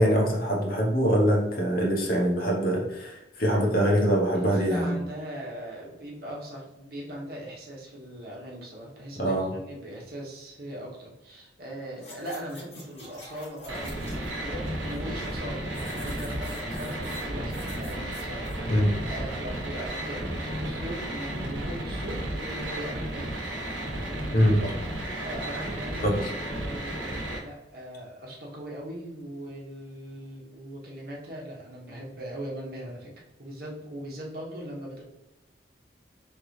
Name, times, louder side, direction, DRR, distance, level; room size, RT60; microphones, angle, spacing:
voice 1, 0.0-4.9 9.2-9.5 18.7-18.9 24.3-24.7 26.0-26.2, equal, 50° left, -1 dB, 0.9 m, -23 dB
voice 2, 4.3-23.3 25.2-33.1 33.4-35.0, equal, 55° right, -3 dB, 1.1 m, -40 dB
sound 1, 12.0-14.3 14.7-15.4 15.7-18.6 19.0-19.1, left 1 dB, 35° left, 1.2 m, -47 dB
sound 2, 13.7-27.4, right 1 dB, 90° right, 0.9 m, -33 dB
3.8 x 3.3 x 3.2 m, 0.95 s
head